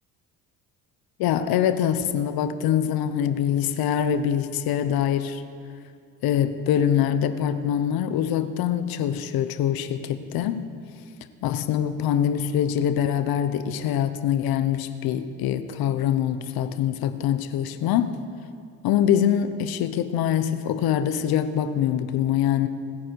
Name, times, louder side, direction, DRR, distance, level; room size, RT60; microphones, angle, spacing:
voice 1, 1.2-5.4 6.2-10.6 11.4-18.2 18.8-22.7, left 9 dB, 75° left, 11 dB, 1.0 m, -24 dB
29.5 x 9.9 x 4.8 m, 2.3 s
supercardioid pair, 85°, 36 cm